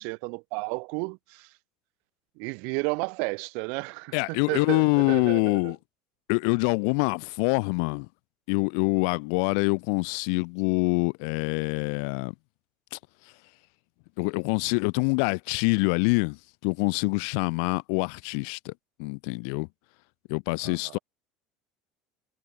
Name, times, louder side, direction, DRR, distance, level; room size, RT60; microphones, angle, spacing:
voice 1, 0.0-1.5 2.4-5.7 20.6-21.0, right 36 dB, 65° right, 5.1 m, -33 dB
voice 2, 4.1-5.8 6.3-8.1 8.5-12.3 12.9-13.0 14.2-18.7 19.0-19.7 20.3-21.0, left 40 dB or more, 70° left, 1.1 m, -25 dB
cardioid pair, 170°, 2 cm